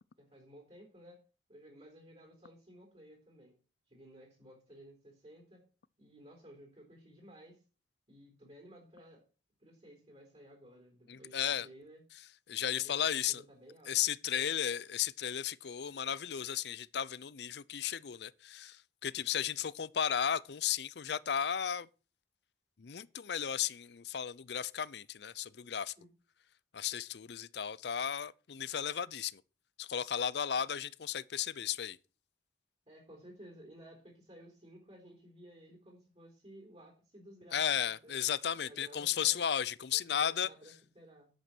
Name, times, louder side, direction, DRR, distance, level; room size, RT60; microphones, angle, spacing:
voice 1, 0.2-1.2 1.5-3.5 3.9-5.6 6.0-7.6 8.1-9.2 9.6-12.0 12.7-13.0 13.3-14.0 14.2-14.6 26.0-26.1 32.9-38.2 38.6-39.5 39.9-41.3, equal, 35° right, 4.0 m, -56 dB
voice 2, 11.1-11.7 12.5-13.4 13.9-21.9 22.8-25.9 26.7-29.4 29.8-32.0 37.5-40.5, left 9 dB, 60° left, 0.5 m, -34 dB
10.5 x 8.2 x 6.1 m
head